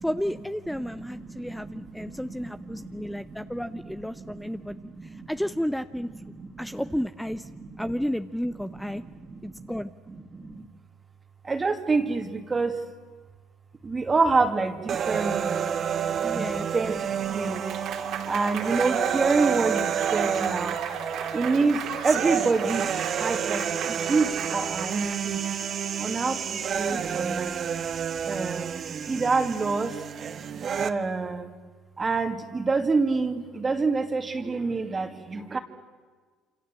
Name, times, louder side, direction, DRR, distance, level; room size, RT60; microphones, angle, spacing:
voice 1, 0.0-4.8 5.0-6.3 6.6-7.5 7.8-9.0 9.4-9.9 16.2-16.7, equal, ahead, 11 dB, 0.7 m, -32 dB
voice 2, 1.3-5.3 6.3-6.8 7.5-8.0 8.7-9.8 10.1-10.7 11.4-12.8 13.8-15.7 16.3-17.6 18.3-20.8 21.3-25.4 26.0-27.5 28.2-30.0 30.8-31.5 32.0-35.6, right 4 dB, 25° right, 5 dB, 2.3 m, -28 dB
sound 1, 14.9-30.9, right 7 dB, 45° right, 1.4 m, -30 dB
Applause / Crowd, 17.0-25.2, right 8 dB, 65° right, 3.2 m, -34 dB
27.0 x 26.0 x 7.6 m, 1.5 s
supercardioid pair, 90°, 0 cm